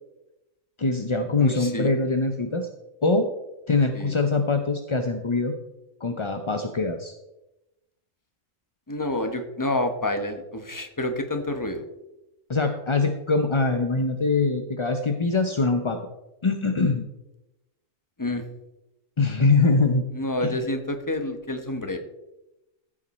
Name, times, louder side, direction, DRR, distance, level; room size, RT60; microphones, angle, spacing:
voice 1, 0.8-2.7 3.0-3.3 3.7-5.5 6.0-7.1 12.5-16.0 16.4-17.1 19.2-20.0 20.4-20.6, left 3 dB, 35° left, 6 dB, 0.5 m, -23 dB
voice 2, 1.4-1.9 3.9-4.1 8.9-11.8 18.2-18.5 20.1-22.0, left 1 dB, 15° left, 6 dB, 1.0 m, -28 dB
14.0 x 7.4 x 4.2 m, 0.95 s
omnidirectional pair, 1.4 m